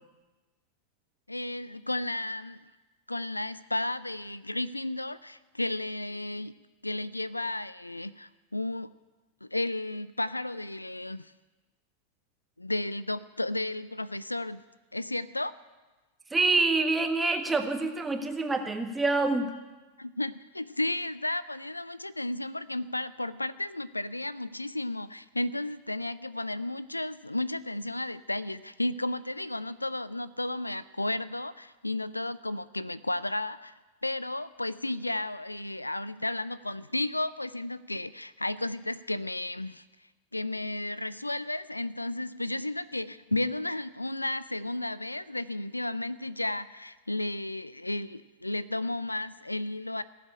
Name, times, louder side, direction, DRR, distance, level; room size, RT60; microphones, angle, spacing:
voice 1, 1.3-2.6 3.1-6.5 6.8-8.9 9.4-11.3 12.6-14.6 14.9-15.5 20.0-39.8 40.3-50.0, left 1 dB, 85° left, 17 dB, 0.4 m, -33 dB
voice 2, 16.3-19.5, right 3 dB, 10° right, 6 dB, 1.6 m, -26 dB
17.5 x 7.7 x 9.7 m, 1.2 s
figure-of-eight pair, 90°, 0 cm